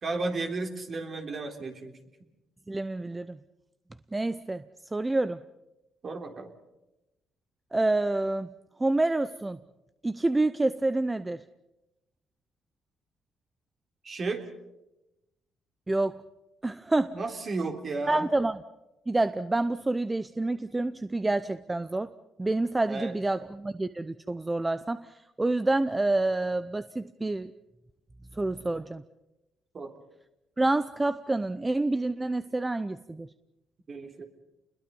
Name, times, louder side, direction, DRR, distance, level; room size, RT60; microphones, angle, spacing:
voice 1, 0.0-2.0 6.0-6.5 14.0-14.4 17.1-18.3 22.9-23.1 29.7-29.9 33.9-34.3, right 3 dB, 45° right, 4 dB, 3.6 m, -33 dB
voice 2, 2.7-3.4 4.1-4.6 4.9-5.4 7.7-8.5 8.8-9.6 10.0-11.4 15.9-16.2 16.6-17.1 18.1-18.6 19.1-22.1 22.4-27.5 28.3-29.0 30.6-33.3, right 2 dB, 15° right, 12 dB, 0.7 m, -28 dB
29.0 x 21.5 x 5.4 m, 0.94 s
cardioid pair, 90°, 0 cm